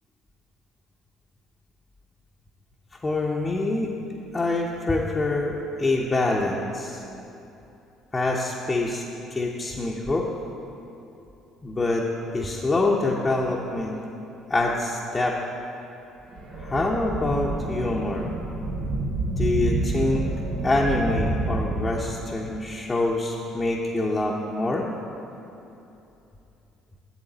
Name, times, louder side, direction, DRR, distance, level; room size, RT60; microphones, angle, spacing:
voice 1, 3.0-3.9 4.3-7.0 8.1-9.0 9.3-10.3 11.6-12.1 12.3-14.0 14.5-15.4 16.5-18.3 19.4-20.2 20.6-24.9, left 2 dB, 25° left, -3 dB, 0.7 m, -25 dB
sound 1, 16.3-22.5, right 2 dB, 65° right, 1.1 m, -28 dB
7.6 x 7.2 x 3.9 m, 2.8 s
hypercardioid pair, 60°, 0 cm